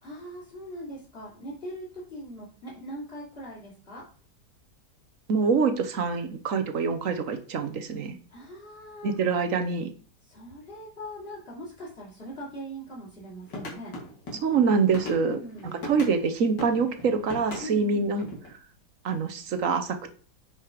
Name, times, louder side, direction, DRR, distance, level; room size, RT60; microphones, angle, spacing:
voice 1, 0.0-4.1 8.3-9.1 10.2-13.9 15.0-15.8 17.6-18.2, left 1 dB, 35° left, -4 dB, 3.3 m, -40 dB
voice 2, 5.3-8.2 9.0-9.9 14.3-15.4 15.8-18.2 19.0-20.1, right 5 dB, 55° right, 9 dB, 1.2 m, -25 dB
sound 1, 13.4-16.2 16.6-18.5, left 1 dB, 80° left, 3.1 m, -39 dB
8.8 x 5.2 x 5.0 m, 0.41 s
omnidirectional pair, 1.9 m